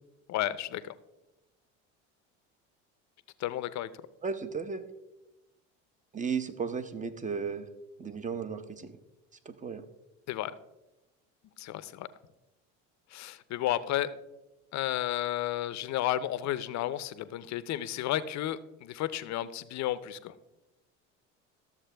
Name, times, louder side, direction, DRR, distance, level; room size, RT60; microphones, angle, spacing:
voice 1, 0.3-0.9 3.4-3.9 10.3-10.5 11.6-12.1 13.1-14.1 14.7-20.3, left 13 dB, 50° left, 15 dB, 0.6 m, -32 dB
voice 2, 4.2-4.8 6.1-7.7 8.0-9.0 9.5-9.8, right 5 dB, 20° right, 11 dB, 0.9 m, -34 dB
13.0 x 7.3 x 3.4 m, 0.97 s
supercardioid pair, 90°, 36 cm